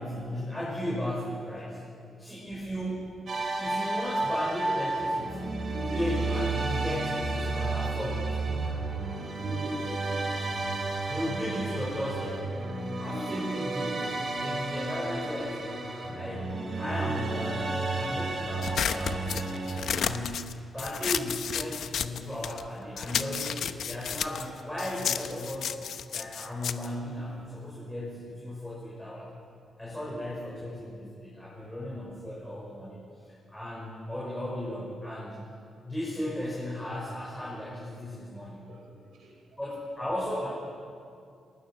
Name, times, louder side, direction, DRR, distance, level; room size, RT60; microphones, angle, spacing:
voice 1, 0.0-1.8 2.2-3.3 3.6-8.4 11.1-12.5 13.0-14.1 14.4-19.5 19.9-25.7 26.1-29.2 29.8-33.0 33.5-35.4 35.8-38.7 39.6-40.5, left 1 dB, 5° left, -7 dB, 5.9 m, -36 dB
sound 1, 3.3-20.0, right 2 dB, 40° right, 5.2 m, -32 dB
voice 2, 9.5-9.9 13.9-14.2 14.7-14.8 38.1-39.4, right 2 dB, 90° right, 0 dB, 6.4 m, -48 dB
sound 2, 18.6-22.7 23.0-27.8, left 8 dB, 65° left, 0.9 m, -32 dB
28.5 x 20.0 x 6.4 m, 2.4 s
wide cardioid pair, 170°, 0 cm